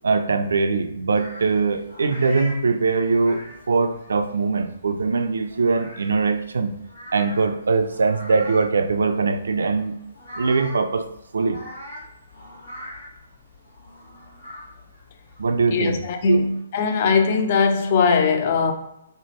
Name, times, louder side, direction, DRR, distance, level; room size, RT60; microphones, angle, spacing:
voice 1, 0.0-3.4 3.7-6.7 7.1-10.0 10.3-11.1 11.3-11.6 15.4-16.0 16.3-16.4, right 4 dB, 65° right, 0.3 m, -21 dB
sound 1, 1.1-16.6, equal, 65° left, 1.4 m, -42 dB
voice 2, 15.7-18.7, left 5 dB, 40° left, 0.4 m, -20 dB
3.3 x 2.0 x 2.9 m
figure-of-eight pair, 130°, 0 cm